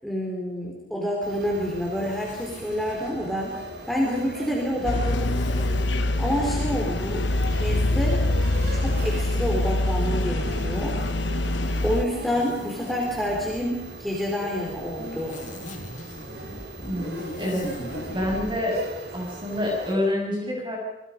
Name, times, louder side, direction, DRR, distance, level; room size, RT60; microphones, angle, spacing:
voice 1, 0.0-3.5 3.9-5.5 6.2-7.3 7.5-8.2 8.7-11.0 11.8-15.4, equal, ahead, -3 dB, 4.1 m, -28 dB
sound 1, 1.2-20.0, right 1 dB, 50° right, 3.3 m, -40 dB
Zipper (clothing), 1.8-3.2 4.8-5.9 7.3-10.6 11.4-13.6 14.6-18.5, left 1 dB, 40° left, 2.3 m, -41 dB
sound 2, 4.8-12.0, left 1 dB, 65° left, 1.1 m, -24 dB
voice 2, 16.9-18.8 19.1-20.8, left 1 dB, 25° right, -1 dB, 6.8 m, -27 dB
27.5 x 24.0 x 5.3 m, 0.91 s
head